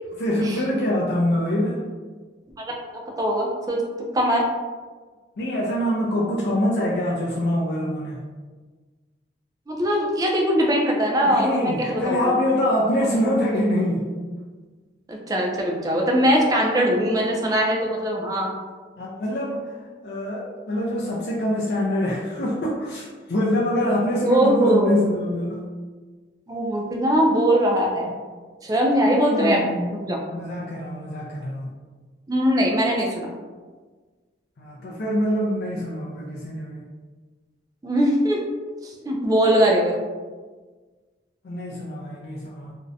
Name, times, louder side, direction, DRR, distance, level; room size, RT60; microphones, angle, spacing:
voice 1, 0.2-1.9 5.4-8.3 11.3-14.1 19.0-25.6 29.0-30.0 30.3-31.7 34.6-36.9 41.4-42.8, left 1 dB, 60° left, -4 dB, 0.4 m, -25 dB
voice 2, 3.2-3.8 4.1-4.4 9.7-12.3 15.1-18.5 24.2-25.0 26.5-28.1 28.6-29.6 29.9-30.2 32.3-33.3 37.8-38.4 38.8-40.0, equal, 20° right, -1 dB, 0.3 m, -21 dB
2.6 x 2.1 x 2.5 m, 1.4 s
head